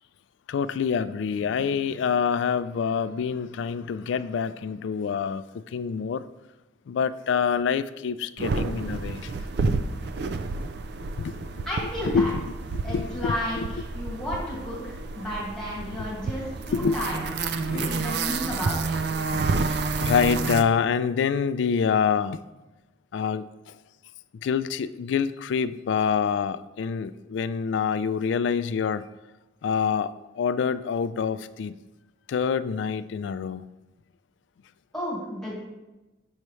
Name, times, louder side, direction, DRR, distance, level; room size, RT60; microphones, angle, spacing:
voice 1, 0.5-5.4 5.7-6.2 6.9-9.2 11.2-11.6 12.1-12.4 12.9-13.7 16.7-16.9 17.6-17.9 20.0-22.4 23.1-23.5 24.4-29.0 29.6-31.7 32.3-33.6, left 6 dB, 70° left, 14 dB, 0.3 m, -26 dB
sound 1, 8.4-20.6, right 4 dB, 55° right, 0.4 m, -30 dB
voice 2, 11.7-12.3 12.8-17.3 17.7-19.0 34.9-35.6, equal, 5° left, -7 dB, 1.9 m, -32 dB
7.2 x 6.6 x 3.1 m, 1.1 s
head